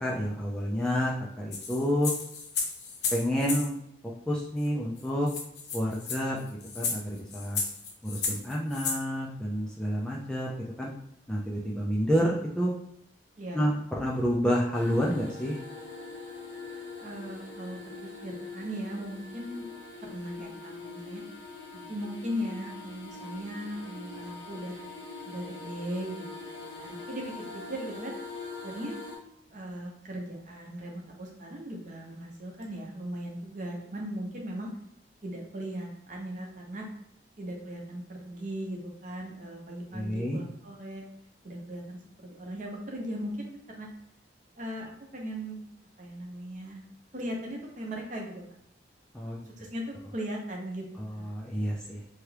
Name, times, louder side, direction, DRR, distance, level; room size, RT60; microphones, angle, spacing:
voice 1, 0.0-2.1 3.1-3.8 4.3-5.3 5.7-6.5 6.8-7.6 8.0-10.9 11.3-12.7 13.5-15.6 39.9-40.4 49.1-49.5 51.0-52.0, equal, 5° left, -4 dB, 0.3 m, -29 dB
sound 1, 1.5-3.7 4.6-4.7 5.0-5.1 5.3-9.0, left 4 dB, 60° left, 0.6 m, -33 dB
voice 2, 13.4-13.7 17.0-19.6 20.0-21.2 21.7-24.8 25.2-26.2 26.5-28.1 28.6-29.0 29.5-34.7 35.2-36.9 37.4-41.0 41.4-43.9 44.6-45.6 46.0-46.9 47.1-48.4 49.6-50.8 51.1-51.3, equal, 45° right, -1 dB, 0.7 m, -38 dB
sound 2, 14.7-29.2, left 3 dB, 85° left, 1.1 m, -43 dB
2.9 x 2.3 x 3.2 m, 0.75 s
head